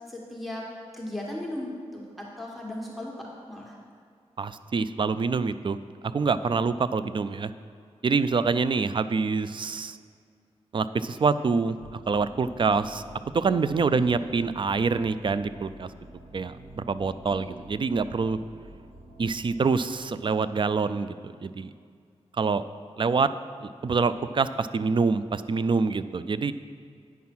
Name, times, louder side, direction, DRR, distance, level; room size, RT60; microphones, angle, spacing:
voice 1, 0.1-0.6 0.9-3.8 13.9-14.1 17.3-17.5, left 1 dB, ahead, -3 dB, 1.5 m, -37 dB
voice 2, 4.4-5.8 6.0-7.5 8.0-10.0 10.7-13.0 13.3-15.9 16.3-18.4 19.2-21.7 22.4-22.6 23.0-23.3 23.6-26.5, right 4 dB, 45° right, 13 dB, 0.4 m, -26 dB
sound 1, 11.8-19.6, right 1 dB, 75° right, 1.0 m, -48 dB
9.4 x 5.6 x 6.0 m, 2.2 s
wide cardioid pair, 85°, 11 cm